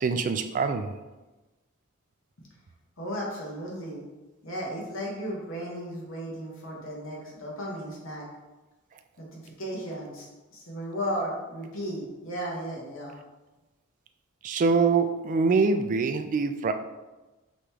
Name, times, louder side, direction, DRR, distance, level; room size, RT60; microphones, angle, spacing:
voice 1, 0.0-0.9 14.4-16.7, right 4 dB, 40° right, 8 dB, 0.3 m, -24 dB
voice 2, 3.0-4.0 4.4-8.3 9.2-10.3 10.5-13.1, equal, 65° left, -4 dB, 1.2 m, -35 dB
5.0 x 3.0 x 3.4 m, 1.1 s
head